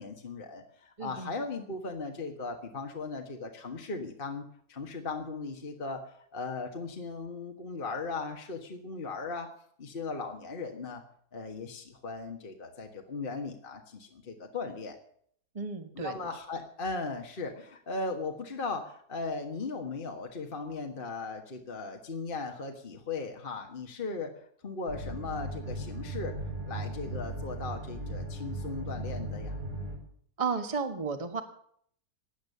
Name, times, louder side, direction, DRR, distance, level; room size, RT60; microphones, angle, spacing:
voice 1, 0.0-9.5 9.8-11.0 11.3-15.0 15.9-26.4 26.7-29.6, left 3 dB, 35° left, 3 dB, 1.6 m, -38 dB
voice 2, 1.0-1.3 15.5-16.3 30.4-31.4, right 5 dB, 20° right, 7 dB, 1.5 m, -33 dB
sound 1, 24.9-30.0, right 1 dB, 85° right, 4.9 m, -37 dB
16.5 x 10.5 x 6.8 m, 0.63 s
omnidirectional pair, 1.7 m